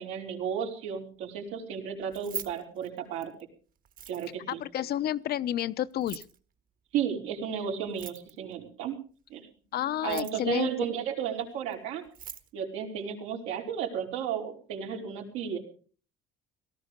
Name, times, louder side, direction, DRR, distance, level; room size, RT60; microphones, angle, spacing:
voice 1, 0.0-3.3 4.1-4.6 6.9-9.0 9.3-9.4 10.0-12.0 12.5-15.6, right 8 dB, 85° right, 2 dB, 4.5 m, -33 dB
Keys jangling, 2.0-3.4 3.9-4.5 5.9-6.4 7.9-8.5 9.9-10.6 11.7-11.8 12.0-12.5, right 7 dB, 45° right, 1.6 m, -42 dB
voice 2, 4.5-6.3 9.7-10.7, left 11 dB, 55° left, 15 dB, 0.8 m, -30 dB
18.0 x 14.0 x 5.2 m, 0.41 s
cardioid pair, 115°, 20 cm